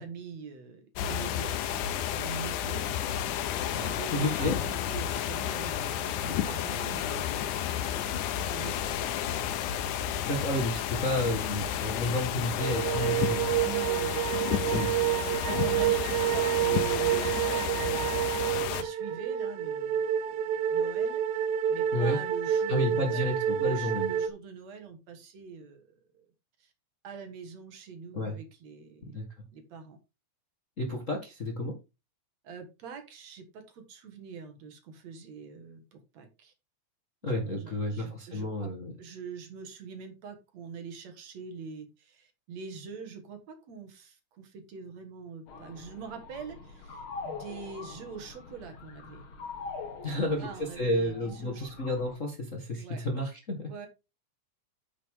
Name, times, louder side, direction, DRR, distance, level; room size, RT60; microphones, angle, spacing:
voice 1, 0.0-3.0 3.6-9.1 13.6-23.4 23.6-26.3 26.6-26.7 27.0-29.2 29.5-30.0 32.4-36.5 37.2-38.7 39.0-49.3 50.1-51.7 52.8-53.0 53.7-53.9, right 5 dB, 65° right, 6 dB, 2.8 m, -44 dB
sound 1, 0.9-18.8, left 10 dB, 85° left, 2.3 m, -31 dB
voice 2, 3.7-4.6 10.2-13.6 14.7-14.9 21.9-22.2 22.7-24.1 28.1-28.3 29.1-29.3 30.8-31.7 37.2-38.9 50.0-50.5 50.8-53.7, left 1 dB, 35° left, 2 dB, 1.4 m, -31 dB
sound 2, 12.6-24.3, right 11 dB, 80° right, 2.1 m, -29 dB
sound 3, 45.5-52.2, left 4 dB, 50° left, 2.1 m, -44 dB
9.5 x 6.4 x 3.7 m, 0.27 s
omnidirectional pair, 3.4 m